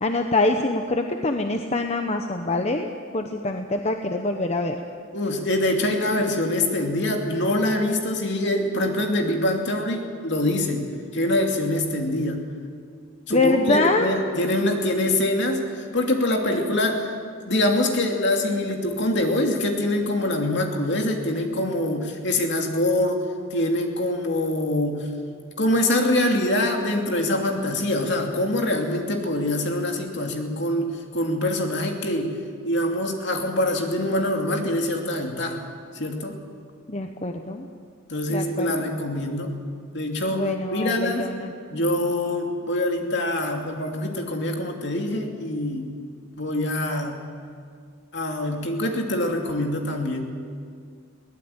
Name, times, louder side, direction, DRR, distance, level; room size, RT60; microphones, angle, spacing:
voice 1, 0.0-2.9 3.1-4.8 13.3-14.1 36.9-37.7 38.3-38.9 40.3-41.5, left 2 dB, 30° left, 5 dB, 0.9 m, -24 dB
voice 2, 5.1-10.8 11.1-12.4 13.3-17.1 17.4-23.2 23.5-25.1 25.6-32.3 32.6-35.6 35.9-36.3 38.1-39.5 39.9-41.3 41.7-45.9 46.4-47.2 48.1-50.2, left 1 dB, 55° left, 2 dB, 2.8 m, -24 dB
22.5 x 17.5 x 8.9 m, 2.2 s
head